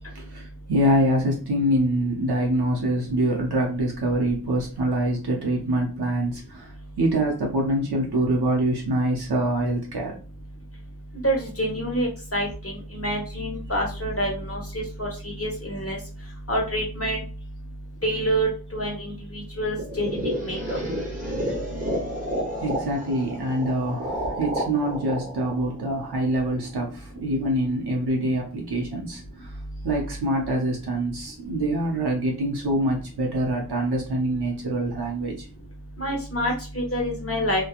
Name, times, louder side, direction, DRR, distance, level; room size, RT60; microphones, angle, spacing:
voice 1, 0.2-10.1 22.6-29.5 29.8-35.5, right 1 dB, 70° right, 0.7 m, -25 dB
voice 2, 11.2-16.0 16.5-17.2 18.0-20.6 36.0-37.7, right 1 dB, 35° left, 1.1 m, -27 dB
sound 1, 19.8-26.7, equal, 20° right, 0.9 m, -31 dB
2.9 x 2.1 x 2.3 m
wide cardioid pair, 60°, 40 cm